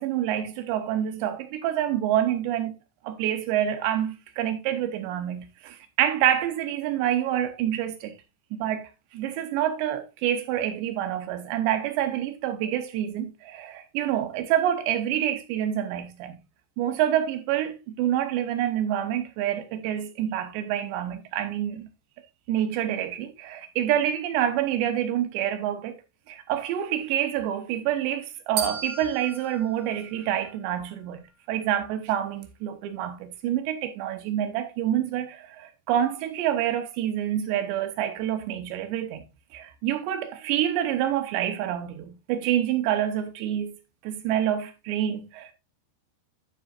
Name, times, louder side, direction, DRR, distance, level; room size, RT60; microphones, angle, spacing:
voice 1, 0.0-2.7 3.0-8.2 8.5-16.4 16.8-21.9 22.5-26.0 26.3-43.8 44.0-45.5, right 11 dB, 90° right, 3.2 m, -27 dB
sound 1, 28.6-30.8, right 7 dB, 75° right, 1.6 m, -35 dB
12.0 x 5.4 x 2.5 m
omnidirectional pair, 4.9 m